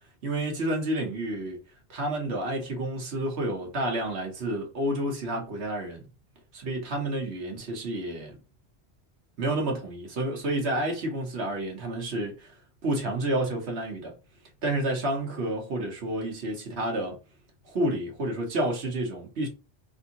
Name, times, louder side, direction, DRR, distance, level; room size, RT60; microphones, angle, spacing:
voice 1, 0.2-1.6 1.9-6.0 6.5-8.4 9.4-12.5 12.8-14.1 14.6-17.2 17.6-19.5, right 1 dB, 75° right, 1.3 m, -30 dB
3.5 x 2.6 x 2.8 m
omnidirectional pair, 1.1 m